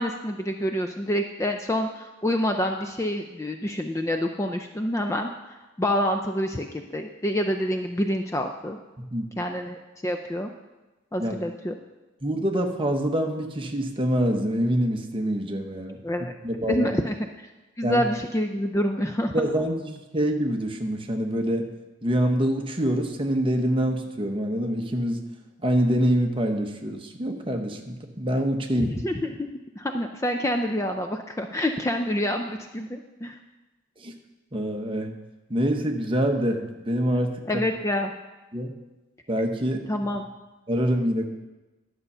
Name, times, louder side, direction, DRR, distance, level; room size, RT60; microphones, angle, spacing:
voice 1, 0.0-8.8 9.4-10.5 11.1-11.8 16.0-16.3 16.7-17.5 17.8-19.3 28.8-33.4 37.5-38.1 39.9-40.3, equal, 15° left, 5 dB, 0.4 m, -27 dB
voice 2, 12.2-16.0 16.4-16.9 17.8-18.0 19.3-21.7 22.0-25.2 25.6-28.9 34.0-34.1 34.5-35.1 35.5-37.6 38.5-38.7 39.3-39.8 40.7-41.3, equal, 25° right, 3 dB, 0.9 m, -25 dB
11.0 x 6.9 x 5.5 m, 1.1 s
head